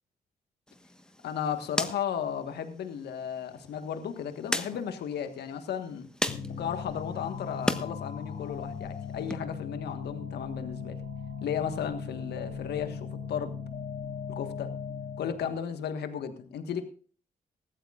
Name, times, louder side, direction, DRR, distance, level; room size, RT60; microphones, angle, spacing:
sound 1, 0.7-7.9 8.2-9.4, left 1 dB, 5° left, 1.3 m, -37 dB
voice 1, 1.2-6.1 6.5-11.0 11.4-13.5 14.3-14.7 15.2-16.8, left 8 dB, 75° left, 8 dB, 1.5 m, -34 dB
sound 2, 6.3-15.5, left 6 dB, 55° left, 3.6 m, -38 dB
20.0 x 14.5 x 2.5 m, 0.42 s
supercardioid pair, 50°, 17 cm